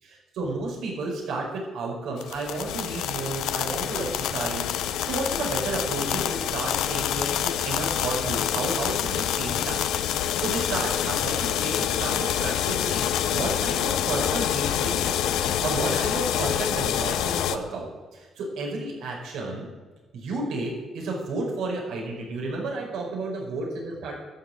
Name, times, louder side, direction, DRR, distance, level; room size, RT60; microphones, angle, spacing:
voice 1, 0.0-4.6 5.0-9.8 10.1-15.1 15.4-19.7 20.1-24.1, right 3 dB, 85° right, -2 dB, 4.8 m, -32 dB
sound 1, 2.2-17.6, left 10 dB, 85° left, 0.7 m, -27 dB
13.0 x 7.3 x 8.8 m, 1.3 s
cardioid pair, 90°, 0 cm